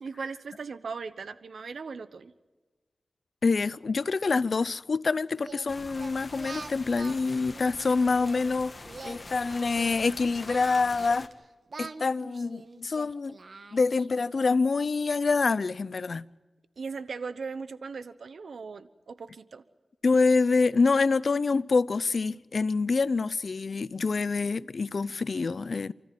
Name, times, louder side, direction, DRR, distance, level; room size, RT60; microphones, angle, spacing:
voice 1, 0.0-2.3 16.8-19.6, right 5 dB, 85° right, 1.1 m, -38 dB
voice 2, 3.4-8.7 9.0-11.3 11.8-13.4 13.7-16.3 20.0-25.9, left 4 dB, 65° left, 0.6 m, -26 dB
Singing, 5.4-8.4 8.9-11.3 11.7-14.3, right 3 dB, 60° right, 1.5 m, -45 dB
sound 1, 5.7-11.3, left 2 dB, 45° left, 1.7 m, -44 dB
29.0 x 14.0 x 9.3 m
cardioid pair, 50°, 0 cm